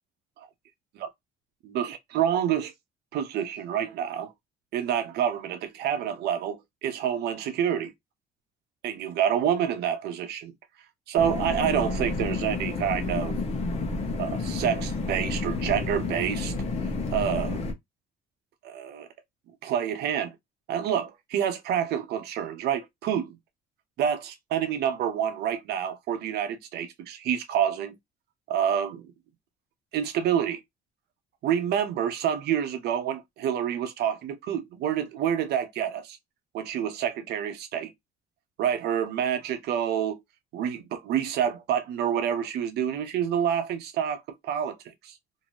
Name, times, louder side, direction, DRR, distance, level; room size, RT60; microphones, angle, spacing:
voice 1, 1.7-2.7 3.1-4.3 4.7-7.9 8.8-10.5 11.1-13.4 14.2-16.5 17.1-17.6 18.6-19.1 19.6-20.3 20.7-23.4 24.0-28.0 28.5-29.0 29.9-30.6 31.4-36.2 36.5-37.9 38.6-40.2 40.5-44.8 45.0-45.1, right 9 dB, 75° right, 0.7 m, -28 dB
sound 1, 11.2-17.7, left 3 dB, 40° left, 0.8 m, -30 dB
2.7 x 2.6 x 2.9 m
cardioid pair, 110°, 17 cm